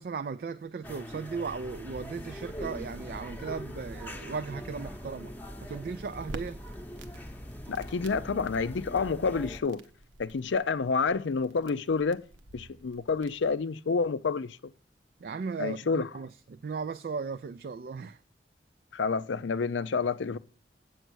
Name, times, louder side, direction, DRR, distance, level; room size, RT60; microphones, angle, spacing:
voice 1, 0.0-5.3 5.6-6.6 15.2-18.2, right 5 dB, 55° right, 0.3 m, -36 dB
sound 1, 0.8-9.6, equal, 10° left, 0.8 m, -42 dB
Crackle, 6.3-13.6, right 2 dB, 80° right, 0.8 m, -49 dB
voice 2, 7.7-9.8 10.2-12.2 12.5-14.6 15.6-16.1 18.9-20.4, left 4 dB, 85° left, 0.5 m, -29 dB
8.0 x 6.3 x 6.2 m
head